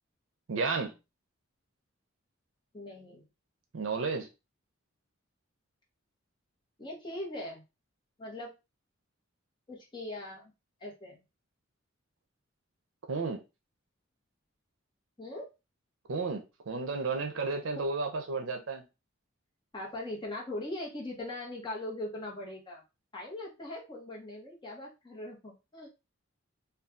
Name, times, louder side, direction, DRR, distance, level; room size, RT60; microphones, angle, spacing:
voice 1, 0.5-0.9 3.7-4.3 13.1-13.4 16.1-18.8, right 4 dB, 75° right, 0.5 m, -32 dB
voice 2, 2.7-3.3 6.8-7.6 8.2-8.5 9.7-10.5 10.8-11.2 15.2-15.5 19.7-22.8 23.1-25.9, left 1 dB, 25° left, 1.0 m, -40 dB
2.6 x 2.3 x 3.4 m
head